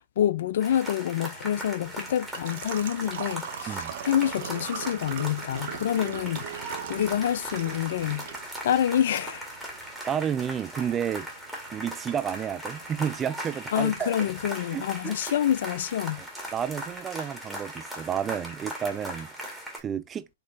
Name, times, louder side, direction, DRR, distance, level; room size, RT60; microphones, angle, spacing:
voice 1, 0.0-8.3 8.6-9.5 13.7-16.2, left 10 dB, 65° left, 0.5 m, -27 dB
sound 1, 0.6-19.8, equal, ahead, 1.9 m, -39 dB
Engine / Trickle dribble / Fill (with liquid), 1.2-13.2, right 9 dB, 60° right, 0.7 m, -42 dB
voice 2, 10.1-11.3 11.7-14.1 14.7-15.1 16.5-20.3, right 8 dB, 20° right, 0.4 m, -31 dB
5.2 x 3.0 x 2.7 m
hypercardioid pair, 125°, 0 cm